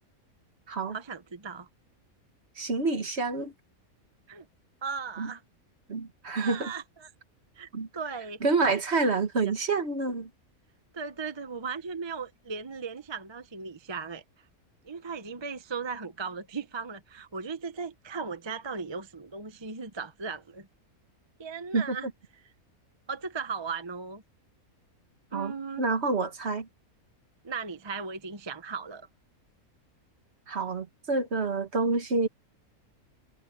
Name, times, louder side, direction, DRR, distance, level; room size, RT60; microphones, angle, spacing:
voice 1, 0.9-1.7 4.3-4.5 4.8-5.4 6.3-7.1 7.6-8.4 9.4-9.5 10.9-14.2 14.8-20.7 21.4-22.1 23.1-24.2 25.3-25.8 27.4-29.1, right 5 dB, 25° right, 0.7 m, -37 dB
voice 2, 2.6-3.5 5.2-5.3 5.9-6.7 7.7-7.9 8.4-10.3 21.7-22.0 25.3-26.7 30.5-32.3, right 3 dB, 50° right, 1.8 m, -28 dB
omnidirectional pair, 1.5 m